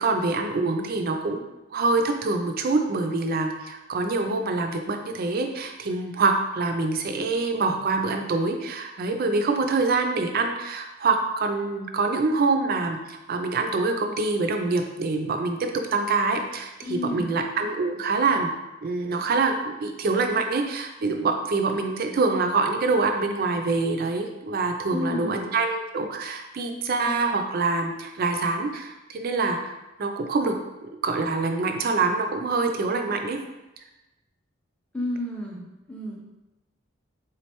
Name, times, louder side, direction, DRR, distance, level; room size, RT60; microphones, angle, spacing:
voice 1, 0.0-1.4 1.7-18.5 18.8-29.7 30.0-30.5 30.8-33.4, right 3 dB, 45° right, 4 dB, 0.4 m, -25 dB
voice 2, 16.8-17.4 24.9-25.5 34.9-36.2, left 1 dB, 5° left, -3 dB, 0.5 m, -32 dB
3.7 x 3.1 x 2.9 m, 0.99 s
head